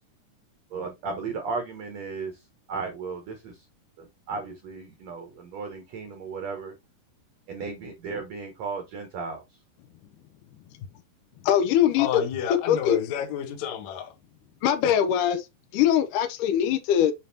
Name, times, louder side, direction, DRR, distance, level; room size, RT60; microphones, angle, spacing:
voice 1, 0.7-2.3 2.7-3.6 4.0-6.7 7.5-9.4, right 4 dB, 70° right, 1.7 m, -35 dB
voice 2, 11.4-12.1 12.7-13.0 14.6-15.4 15.7-17.1, left 10 dB, 85° left, 1.8 m, -22 dB
voice 3, 12.0-14.1 14.8-14.9, left 8 dB, 65° left, 1.8 m, -30 dB
7.4 x 5.3 x 2.8 m
omnidirectional pair, 4.8 m